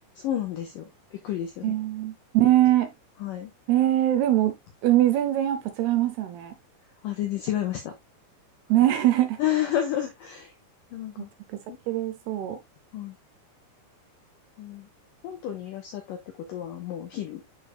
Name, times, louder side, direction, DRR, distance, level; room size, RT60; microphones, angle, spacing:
voice 1, 0.2-1.8 3.2-3.5 7.0-7.9 9.4-10.5 10.9-11.3 11.7-11.8 12.9-13.2 14.6-14.9 15.2-17.4, left 11 dB, 80° left, 1.9 m, -31 dB
voice 2, 1.6-2.9 3.7-4.6 4.8-6.5 8.7-9.4 11.9-12.6, right 13 dB, 80° right, 2.5 m, -22 dB
10.5 x 4.8 x 2.2 m
omnidirectional pair, 5.2 m